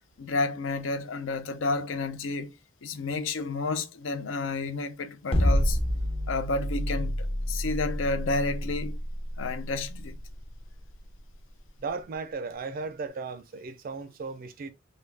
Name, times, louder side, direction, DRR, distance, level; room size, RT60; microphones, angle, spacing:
voice 1, 0.2-2.5 2.8-5.8 6.3-7.2 7.5-9.0 9.4-10.2, left 3 dB, 85° left, 0.5 m, -30 dB
sound 1, 5.3-11.5, equal, 30° left, 0.6 m, -28 dB
voice 2, 11.8-14.7, right 4 dB, 50° right, 0.4 m, -36 dB
3.4 x 2.3 x 3.2 m
head